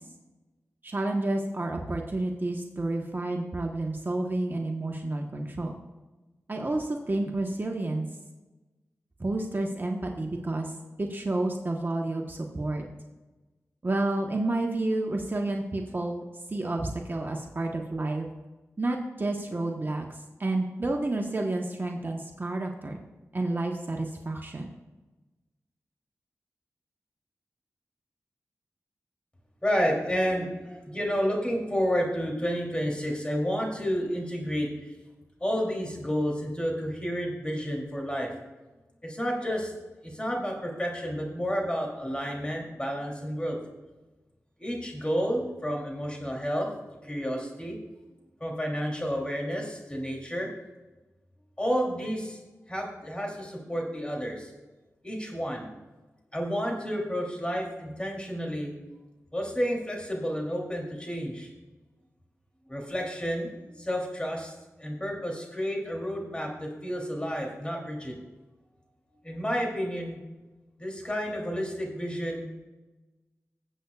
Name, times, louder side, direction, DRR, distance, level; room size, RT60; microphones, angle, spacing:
voice 1, 0.8-5.7 6.5-8.1 9.2-10.7 11.0-12.8 13.8-16.2 16.5-18.3 18.8-23.0 23.3-24.7, right 2 dB, 40° right, 1 dB, 1.1 m, -30 dB
voice 2, 29.6-34.9 35.4-38.3 39.0-39.7 40.0-43.6 44.6-46.7 47.0-47.8 48.4-50.5 51.6-52.4 52.7-54.5 55.0-55.7 56.3-58.7 59.3-61.5 62.7-64.5 64.8-68.2 69.2-70.2 70.8-72.5, equal, 20° left, -1 dB, 3.0 m, -30 dB
19.5 x 8.0 x 2.4 m, 1.2 s
cardioid pair, 60°, 6 cm